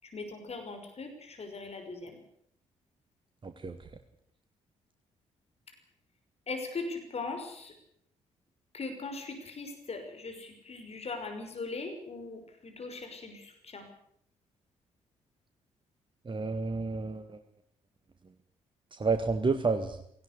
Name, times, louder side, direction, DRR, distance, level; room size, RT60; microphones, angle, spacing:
voice 1, 0.0-2.2 6.5-7.7 8.7-13.9, left 3 dB, 40° left, 5 dB, 5.8 m, -40 dB
voice 2, 3.4-3.8 16.3-17.4 19.0-20.0, right 4 dB, 30° right, 8 dB, 1.8 m, -30 dB
18.0 x 17.5 x 9.7 m, 0.69 s
figure-of-eight pair, 40°, 17 cm